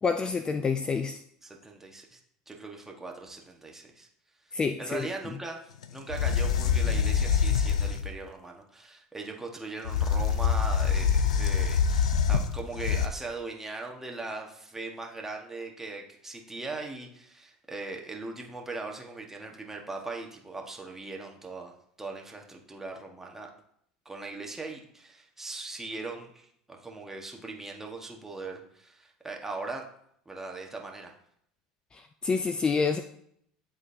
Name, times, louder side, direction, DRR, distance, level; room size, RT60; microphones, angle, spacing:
voice 1, 0.0-1.2 4.5-5.1 31.9-33.0, left 5 dB, 25° left, 9 dB, 0.4 m, -28 dB
voice 2, 1.4-2.2 2.5-4.1 4.4-23.5 24.0-29.9 30.2-31.2, right 3 dB, 10° right, 1 dB, 1.4 m, -40 dB
sound 1, 5.8-5.9 6.1-8.1 9.9-13.1, left 7 dB, 90° left, 0.4 m, -25 dB
11.0 x 3.8 x 2.7 m, 0.69 s
hypercardioid pair, 80°, 3 cm